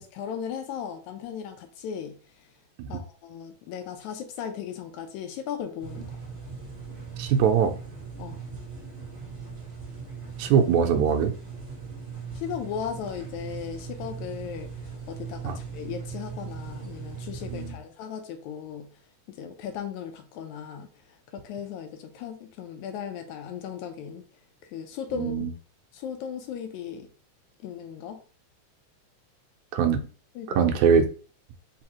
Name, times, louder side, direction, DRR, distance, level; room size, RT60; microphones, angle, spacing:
voice 1, 0.0-2.5 2.9-6.1 8.2-8.4 12.4-18.9 19.3-24.2 24.7-25.4 25.9-27.1 27.6-28.2 30.4-30.7, left 8 dB, 80° left, 1.9 m, -37 dB
sound 1, 5.8-17.7, right 5 dB, 25° right, 1.2 m, -39 dB
voice 2, 7.2-7.7 10.4-11.3 15.4-15.6 25.2-25.5 29.7-30.0 30.6-31.0, right 7 dB, 80° right, 2.0 m, -21 dB
4.7 x 3.3 x 2.9 m
omnidirectional pair, 3.4 m